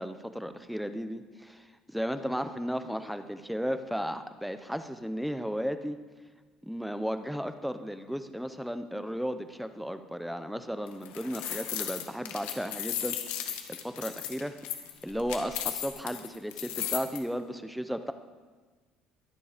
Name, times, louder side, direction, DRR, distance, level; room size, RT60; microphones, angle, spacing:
voice 1, 0.0-6.0 6.6-14.6 15.0-18.1, equal, ahead, 9 dB, 0.7 m, -35 dB
sound 1, 10.9-17.2, left 10 dB, 80° left, 1.7 m, -35 dB
23.0 x 9.9 x 5.1 m, 1.4 s
cardioid pair, 170°, 2 cm